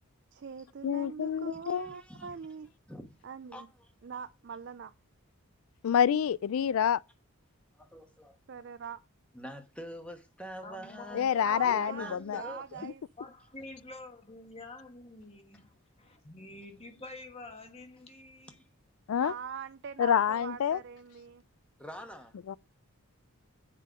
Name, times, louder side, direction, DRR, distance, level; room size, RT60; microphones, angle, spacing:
voice 1, 0.3-2.7 3.2-3.7 4.0-4.9 6.1-6.2 8.5-9.0 11.4-13.0 19.2-21.4, right 6 dB, 50° right, 0.4 m, -42 dB
voice 2, 0.8-1.9 5.8-7.0 11.1-12.4 12.8-12.9 19.1-19.3 20.0-20.8 22.5-22.6, left 8 dB, 70° left, 0.3 m, -27 dB
voice 3, 1.6-2.3 2.9-3.1 3.5-3.7 7.7-8.4 9.3-11.3 11.6-12.9 18.5-18.6 21.8-22.4, equal, 5° left, 1.1 m, -45 dB
voice 4, 10.6-12.6 13.2-18.6, left 2 dB, 25° left, 1.4 m, -48 dB
7.5 x 5.4 x 5.1 m
head